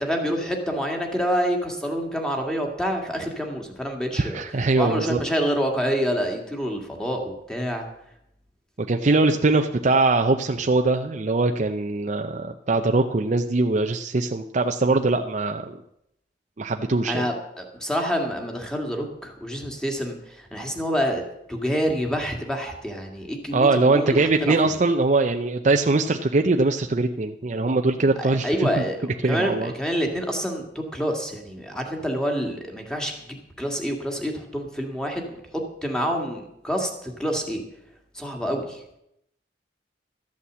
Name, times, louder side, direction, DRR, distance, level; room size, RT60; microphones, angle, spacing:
voice 1, 0.0-7.9 17.1-24.7 28.2-37.6 38.1-38.8, equal, 5° left, 2 dB, 2.0 m, -27 dB
voice 2, 4.1-5.2 8.8-15.8 16.6-17.3 23.5-28.8 29.2-29.7, right 3 dB, 40° right, 5 dB, 0.6 m, -22 dB
13.0 x 8.4 x 7.4 m, 0.81 s
head